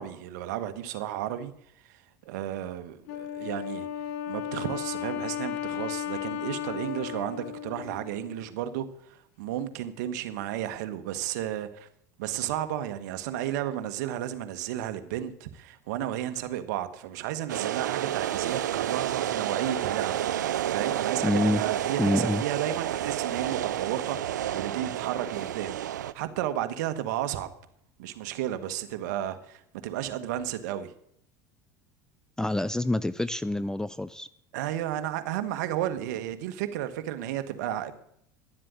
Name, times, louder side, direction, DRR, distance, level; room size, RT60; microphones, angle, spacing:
voice 1, 0.0-1.5 1.8-1.9 2.2-3.9 4.3-11.9 12.2-20.3 20.7-25.8 26.1-27.5 28.0-30.9 34.5-38.0, right 12 dB, 75° right, 1.5 m, -33 dB
Wind instrument woodwind instrument, 3.1-8.5, left 10 dB, 70° left, 1.0 m, -35 dB
sound 1, 17.5-26.1, right 11 dB, 90° right, 0.7 m, -30 dB
voice 2, 21.2-21.6 22.0-22.4 32.4-34.3, left 1 dB, 5° left, 0.5 m, -26 dB
11.5 x 7.6 x 9.6 m
hypercardioid pair, 90°, 9 cm